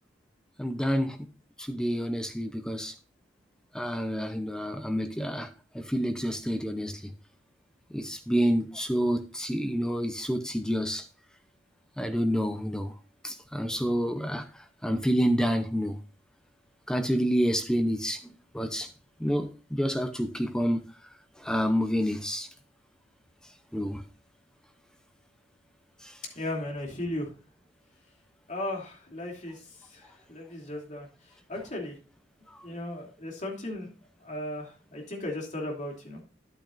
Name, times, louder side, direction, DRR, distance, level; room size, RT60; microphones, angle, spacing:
voice 1, 0.6-1.2 1.6-2.9 3.7-5.5 5.7-7.1 7.9-11.0 12.0-12.9 13.2-14.4 14.8-16.0 16.9-18.9 19.2-20.9 21.4-22.5 23.7-24.0 26.0-26.1, equal, 5° left, 0.7 m, -28 dB
voice 2, 26.3-27.3 28.5-29.6 29.9-31.1 31.5-31.9 32.6-33.9 34.2-36.2, left 1 dB, 40° left, 2.8 m, -36 dB
11.0 x 9.0 x 2.5 m
head